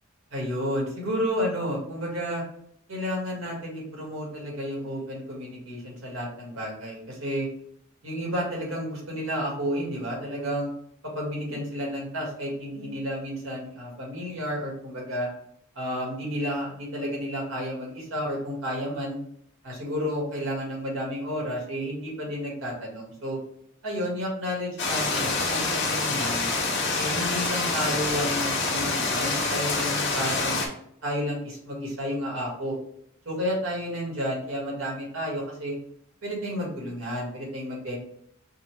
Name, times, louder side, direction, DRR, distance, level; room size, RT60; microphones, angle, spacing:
voice 1, 0.3-2.4 2.9-7.5 8.0-10.7 11.1-15.3 15.7-19.2 19.6-23.4 23.8-26.5 26.9-30.6 31.0-32.8 33.2-35.8 36.2-38.0, equal, 80° right, -3 dB, 1.7 m, -31 dB
sound 1, 24.8-30.7, left 3 dB, 60° left, 1.0 m, -26 dB
5.4 x 2.3 x 3.2 m, 0.69 s
head